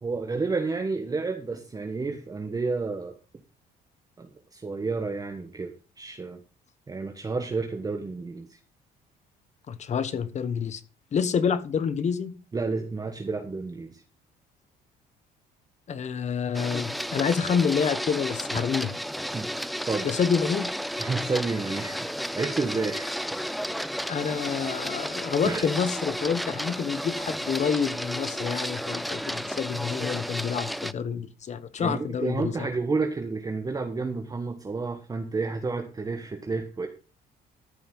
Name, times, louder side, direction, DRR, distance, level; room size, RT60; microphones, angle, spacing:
voice 1, 0.0-3.1 4.2-6.4 6.9-8.6 12.5-14.0 19.3-19.5 19.9-20.1 21.0-22.0 22.3-23.1 25.4-25.7 31.8-36.9, right 3 dB, 20° right, 5 dB, 1.3 m, -30 dB
voice 2, 9.7-10.8 11.1-12.4 15.9-19.0 20.0-20.7 24.1-32.7, left 6 dB, 45° left, 13 dB, 1.3 m, -28 dB
Printer, 16.5-30.9, equal, ahead, 0.5 m, -32 dB
13.5 x 5.8 x 5.6 m, 0.35 s
cardioid pair, 110°, 17 cm